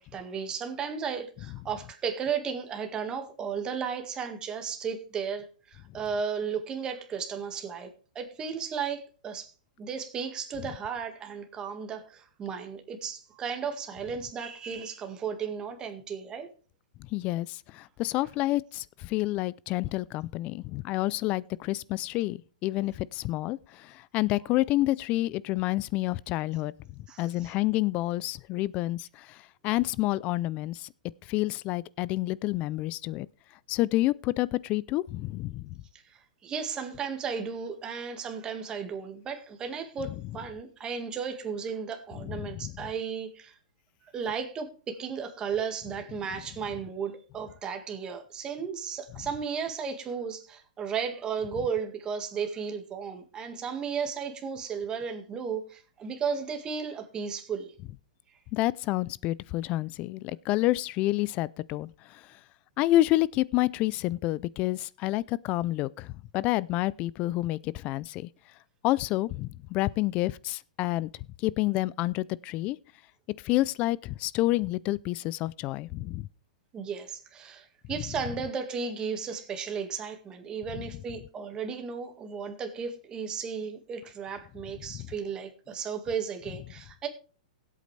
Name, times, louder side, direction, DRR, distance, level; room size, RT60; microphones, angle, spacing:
voice 1, 0.0-7.9 8.2-9.5 9.8-16.5 27.1-27.5 35.9-43.6 44.1-57.7 76.7-87.1, right 6 dB, 20° right, 1.8 m, -34 dB
voice 2, 17.1-26.7 27.2-29.4 29.6-30.9 31.3-33.3 33.7-35.7 42.3-42.7 58.5-62.2 62.8-68.3 68.8-71.1 71.4-72.8 73.4-76.3 84.9-85.1, left 17 dB, 30° left, 0.4 m, -29 dB
18.0 x 8.4 x 3.3 m
hypercardioid pair, 145°, 4 cm